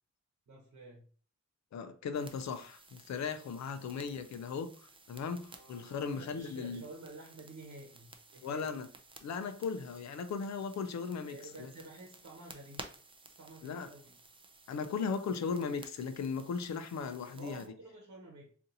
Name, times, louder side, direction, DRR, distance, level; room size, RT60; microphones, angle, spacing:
voice 1, 0.5-1.0 3.8-4.0 5.5-8.8 11.2-12.8 13.4-14.2 17.4-18.5, right 2 dB, 65° right, 1.0 m, -51 dB
voice 2, 1.7-4.7 5.1-6.8 8.4-8.9 9.2-11.4 13.6-13.9 14.7-17.7, left 5 dB, 65° left, 0.4 m, -37 dB
sound 1, 2.1-17.7, right 3 dB, 20° right, 0.4 m, -55 dB
2.7 x 2.5 x 3.8 m
wide cardioid pair, 120°, 30 cm